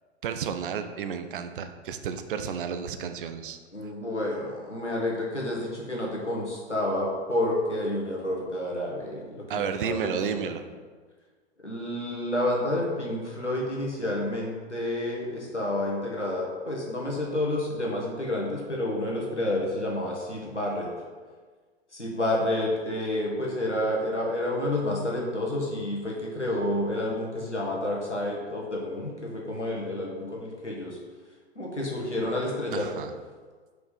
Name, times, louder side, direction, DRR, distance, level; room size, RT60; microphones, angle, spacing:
voice 1, 0.2-3.6 9.5-10.6 32.7-33.1, right 7 dB, 50° right, 8 dB, 0.6 m, -32 dB
voice 2, 3.7-10.5 11.6-20.9 21.9-31.0 31.5-32.9, left 1 dB, 90° left, -3 dB, 1.7 m, -29 dB
5.0 x 5.0 x 5.1 m, 1.5 s
figure-of-eight pair, 105°, 34 cm